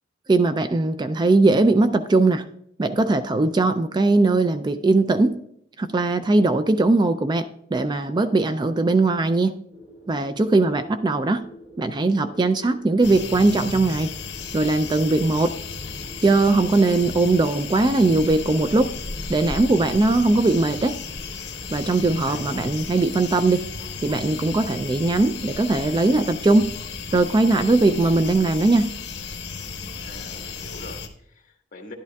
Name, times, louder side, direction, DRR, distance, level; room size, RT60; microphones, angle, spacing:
voice 1, 0.3-2.5 2.8-5.3 5.8-9.6 10.1-11.4 11.8-14.1 14.5-15.5 16.2-18.9 19.3-21.0 21.7-23.7 24.0-26.7 27.1-28.9, right 2 dB, 25° right, 11 dB, 0.3 m, -20 dB
sound 1, 9.7-21.8, right 1 dB, 10° right, 2.3 m, -48 dB
sound 2, 13.0-31.1, left 4 dB, 65° left, 1.0 m, -34 dB
voice 2, 22.0-22.7 30.0-31.9, left 2 dB, 45° left, 2 dB, 1.5 m, -43 dB
11.0 x 10.5 x 2.3 m, 0.69 s
head